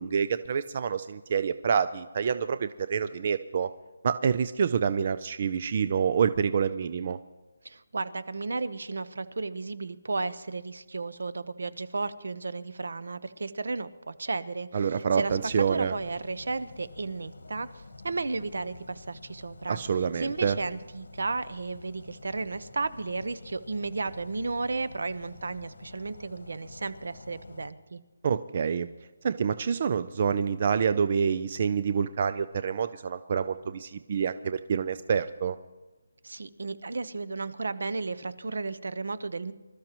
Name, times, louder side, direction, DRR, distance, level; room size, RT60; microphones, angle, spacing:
voice 1, 0.0-3.7 4.0-7.2 14.7-16.0 19.7-20.6 28.2-28.9 29.2-35.6, right 6 dB, 30° right, 12 dB, 0.4 m, -27 dB
voice 2, 7.6-19.8 20.1-28.0 36.2-39.5, right 3 dB, 70° right, 13 dB, 0.9 m, -34 dB
sound 1, 15.1-27.7, left 3 dB, 80° left, 1.5 m, -49 dB
25.5 x 13.0 x 3.0 m, 1.2 s
hypercardioid pair, 175°, 0 cm